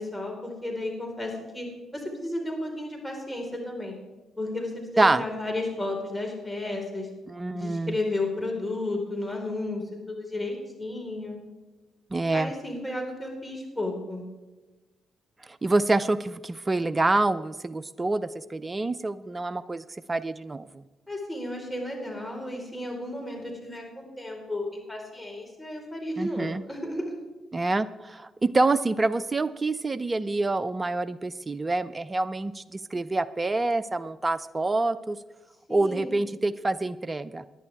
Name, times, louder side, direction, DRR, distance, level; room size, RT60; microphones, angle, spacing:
voice 1, 0.0-1.7 1.9-3.9 4.4-7.1 7.5-9.8 10.1-11.4 12.3-14.2 21.1-27.0 35.7-36.1, left 2 dB, 10° left, 1 dB, 4.6 m, -33 dB
voice 2, 7.3-8.0 12.1-12.5 15.5-20.8 26.2-26.6 27.5-35.2 35.7-37.5, right 2 dB, 30° right, 16 dB, 0.5 m, -26 dB
18.5 x 10.5 x 3.6 m, 1.2 s
hypercardioid pair, 45°, 0 cm